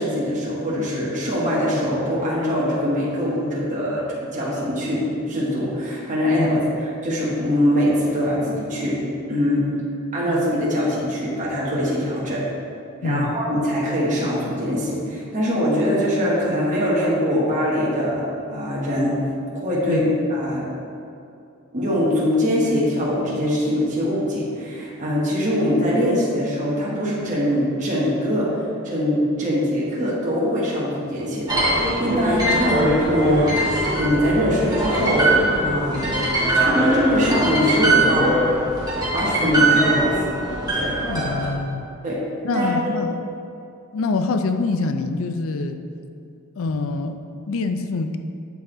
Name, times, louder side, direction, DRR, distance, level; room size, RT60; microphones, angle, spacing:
voice 1, 0.0-4.0 4.3-6.6 7.0-9.0 9.3-9.6 10.1-12.5 13.0-19.1 19.6-20.7 21.7-28.6 28.8-36.1 36.5-38.3 39.1-40.2 40.7-40.9 42.0-42.2 42.5-43.0, equal, 35° right, -7 dB, 1.3 m, -22 dB
voice 2, 13.0-13.6 19.9-20.0 41.0-41.9 42.4-43.1 43.9-45.8 46.6-47.2 47.5-48.2, left 3 dB, 65° left, 7 dB, 0.4 m, -25 dB
sound 1, 31.5-41.5, right 1 dB, 20° right, 1.5 m, -21 dB
8.3 x 4.0 x 3.8 m, 2.5 s
head